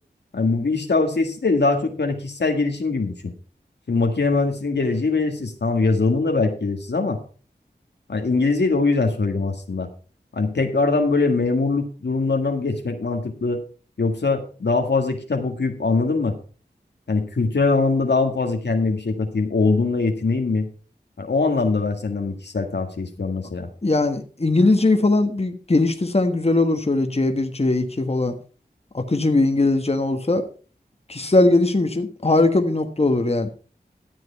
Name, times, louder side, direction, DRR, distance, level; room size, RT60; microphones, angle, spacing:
voice 1, 0.3-3.3 3.9-7.2 8.1-9.9 10.3-13.6 14.0-16.4 17.1-20.7 21.2-23.7, left 3 dB, 85° left, 5 dB, 1.7 m, -22 dB
voice 2, 23.8-28.4 28.9-30.5 31.1-33.5, left 2 dB, 35° left, 6 dB, 1.3 m, -20 dB
13.0 x 7.8 x 4.6 m, 0.39 s
wide cardioid pair, 45°, 17 cm